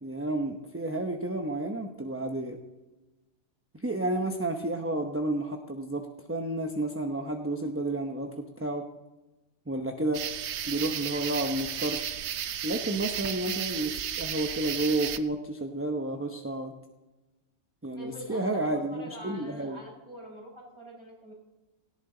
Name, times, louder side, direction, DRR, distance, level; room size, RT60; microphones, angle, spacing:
voice 1, 0.0-2.6 3.7-8.3 8.6-8.8 9.7-10.2 10.7-12.0 12.6-16.7 17.8-19.8, right 2 dB, 10° right, 4 dB, 0.8 m, -31 dB
sound 1, 10.1-15.2, right 9 dB, 60° right, 0.9 m, -34 dB
voice 2, 18.0-21.3, right 1 dB, 20° left, -3 dB, 6.3 m, -45 dB
18.0 x 17.0 x 3.9 m, 1.1 s
omnidirectional pair, 1.4 m